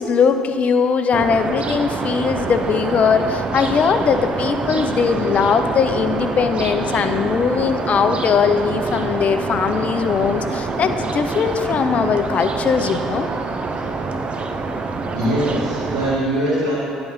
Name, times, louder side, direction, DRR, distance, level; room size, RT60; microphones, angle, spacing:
voice 1, 0.0-13.3, left 6 dB, 45° left, 8 dB, 0.6 m, -20 dB
sound 1, 1.1-16.2, right 3 dB, 35° right, 0.6 m, -26 dB
voice 2, 15.1-16.8, right 1 dB, 85° right, -10 dB, 1.8 m, -21 dB
10.5 x 3.8 x 5.8 m, 2.7 s
hypercardioid pair, 60°, 3 cm